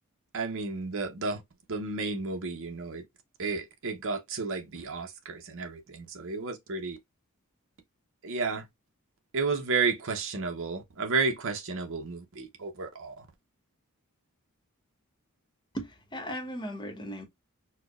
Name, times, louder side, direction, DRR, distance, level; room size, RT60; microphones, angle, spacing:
voice 1, 0.3-1.4 1.7-3.0 3.4-7.0 8.2-8.7 9.3-13.3, right 4 dB, 65° right, 0.8 m, -32 dB
voice 2, 15.7-17.3, equal, 20° left, 0.9 m, -37 dB
4.3 x 2.1 x 2.3 m
head